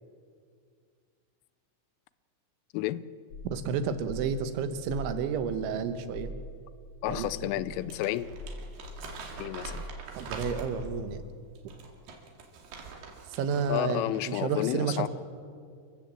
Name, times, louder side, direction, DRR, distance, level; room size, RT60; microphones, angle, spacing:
voice 1, 2.7-3.0 7.0-8.3 9.4-9.8 13.7-15.1, left 15 dB, 85° left, 16 dB, 3.2 m, -31 dB
sound 1, 3.3-11.0, left 1 dB, 40° left, 3.6 m, -43 dB
voice 2, 3.5-6.3 7.1-7.3 10.2-11.2 13.3-15.1, right 6 dB, 75° right, 9 dB, 3.4 m, -31 dB
Crumpling crinkling, 7.7-11.0 11.6-13.8 14.1-14.3, right 4 dB, 55° right, 3.9 m, -44 dB
28.5 x 15.5 x 7.5 m, 2.2 s
omnidirectional pair, 5.7 m